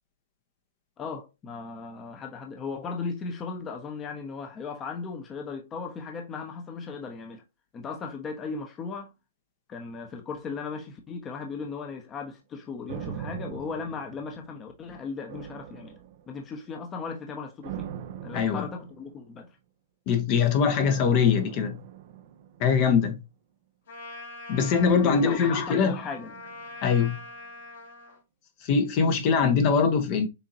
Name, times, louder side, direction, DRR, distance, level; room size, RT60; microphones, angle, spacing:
voice 1, 1.0-7.4 7.7-9.1 9.7-15.9 16.3-17.9 18.2-19.6 25.0-26.3, left 5 dB, 20° left, 1.0 m, -37 dB
sound 1, 12.9-14.8 15.3-16.6 17.6-19.3 20.7-23.1 24.7-26.9 27.2-27.3, right 9 dB, 50° right, 0.7 m, -41 dB
voice 2, 18.3-18.6 20.1-21.8 22.6-23.2 24.5-26.0 26.8-27.2 28.6-30.3, left 6 dB, 40° left, 1.0 m, -22 dB
Trumpet, 23.9-28.2, left 2 dB, 65° left, 3.0 m, -43 dB
7.0 x 2.8 x 2.7 m
hypercardioid pair, 125°, 0 cm